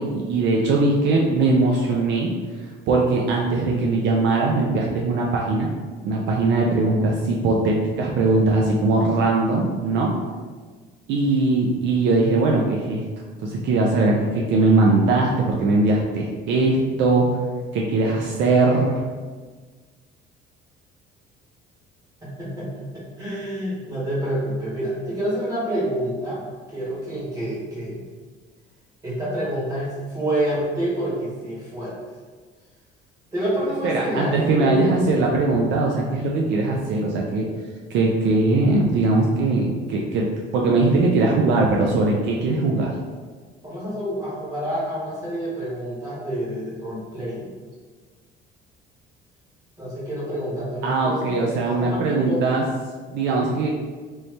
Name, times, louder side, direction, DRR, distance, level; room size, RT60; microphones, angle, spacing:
voice 1, 0.0-2.3 2.9-5.7 6.0-10.1 11.1-13.1 13.4-17.3 17.7-19.0 33.8-37.5 37.9-40.3 40.5-42.9 50.8-52.6 53.1-53.7, right 3 dB, 65° right, -1 dB, 0.4 m, -20 dB
voice 2, 22.2-26.4 26.7-28.1 29.0-32.0 33.3-35.3 43.6-47.5 49.8-52.5, right 1 dB, 15° right, -9 dB, 1.4 m, -28 dB
3.1 x 2.7 x 3.2 m, 1.4 s
cardioid pair, 160°, 20 cm